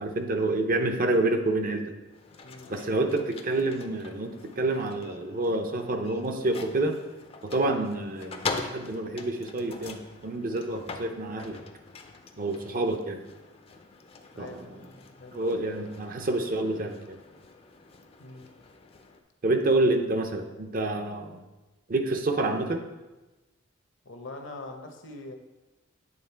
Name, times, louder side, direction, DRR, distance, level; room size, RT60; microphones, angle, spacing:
voice 1, 0.0-2.0 2.7-7.0 7.4-11.6 12.4-13.2 14.4-14.7 15.3-17.2 19.4-21.4 21.9-22.8, right 2 dB, 45° right, 5 dB, 0.6 m, -28 dB
sound 1, 2.0-19.2, left 4 dB, 30° left, 0.5 m, -43 dB
voice 2, 2.4-3.0 14.3-15.4 18.2-18.5 24.0-25.3, left 2 dB, 65° left, 4 dB, 0.8 m, -44 dB
8.9 x 3.6 x 4.5 m, 1.1 s
head